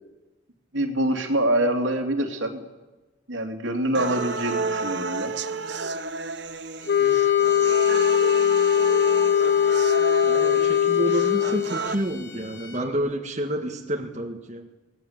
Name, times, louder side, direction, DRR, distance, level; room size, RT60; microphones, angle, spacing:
voice 1, 0.7-2.6 3.3-5.3, right 1 dB, 80° right, 3 dB, 2.9 m, -25 dB
sound 1, 3.9-11.9, right 4 dB, 60° right, 0.9 m, -31 dB
sound 2, 6.8-13.0, left 5 dB, 75° left, 2.1 m, -44 dB
sound 3, 6.9-11.8, left 9 dB, 50° left, 0.8 m, -20 dB
voice 2, 10.2-14.7, right 1 dB, 35° right, 2 dB, 1.6 m, -29 dB
22.5 x 18.5 x 8.2 m, 1.1 s
head